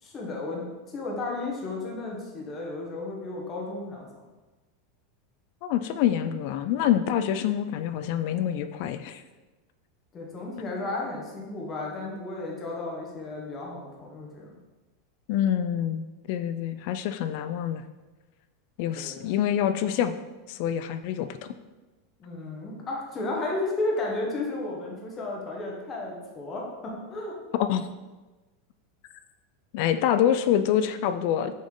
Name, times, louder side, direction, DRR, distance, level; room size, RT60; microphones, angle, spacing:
voice 1, 0.0-4.1 10.1-14.6 18.9-19.3 22.2-27.3, left 2 dB, 20° left, -2 dB, 1.1 m, -33 dB
voice 2, 5.6-9.2 15.3-17.8 18.8-20.1 20.5-21.4 27.6-27.9 29.7-31.5, left 10 dB, 50° left, 10 dB, 0.3 m, -26 dB
6.1 x 4.2 x 3.8 m, 1.2 s
supercardioid pair, 160°, 0 cm